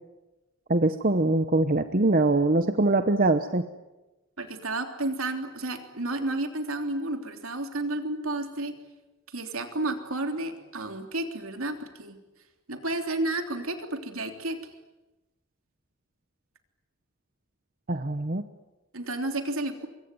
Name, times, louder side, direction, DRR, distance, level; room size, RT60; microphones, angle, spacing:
voice 1, 0.7-3.6 17.9-18.4, right 2 dB, 40° right, 9 dB, 0.9 m, -23 dB
voice 2, 4.4-8.7 9.3-12.2 12.7-14.6 18.9-19.9, right 2 dB, 70° right, 6 dB, 3.3 m, -31 dB
24.5 x 23.5 x 9.4 m, 1.1 s
head